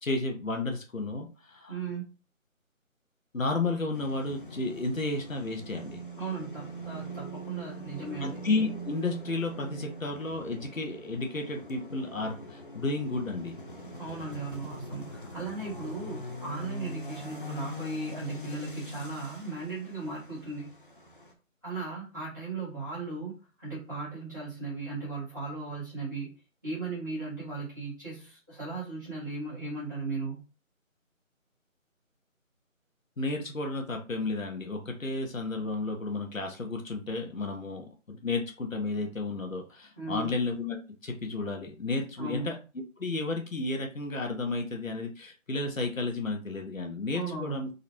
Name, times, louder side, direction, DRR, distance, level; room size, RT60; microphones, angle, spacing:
voice 1, 0.0-1.8 3.3-6.0 8.2-13.5 33.2-40.8 41.0-42.6 43.0-47.7, left 3 dB, 70° left, 3 dB, 1.1 m, -32 dB
voice 2, 1.7-2.2 6.2-8.4 14.0-20.8 21.6-26.3 26.6-30.5 40.0-40.3 42.2-42.5 47.1-47.6, right 3 dB, 15° right, -10 dB, 1.3 m, -37 dB
sound 1, 3.9-21.3, equal, 40° left, 0.7 m, -42 dB
3.9 x 2.4 x 4.4 m, 0.32 s
figure-of-eight pair, 170°, 41 cm